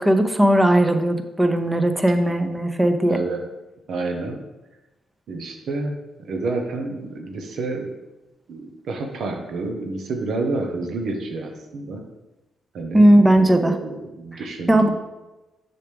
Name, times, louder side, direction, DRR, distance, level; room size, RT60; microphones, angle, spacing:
voice 1, 0.0-3.2 12.9-13.8 14.7-14.9, right 1 dB, 15° right, 7 dB, 0.7 m, -17 dB
voice 2, 3.1-3.4 3.9-4.4 5.3-7.9 8.5-12.0 12.7-13.1 13.4-14.9, right 3 dB, 70° right, 3 dB, 1.0 m, -29 dB
6.6 x 6.0 x 3.4 m, 1.1 s
supercardioid pair, 60°, 0 cm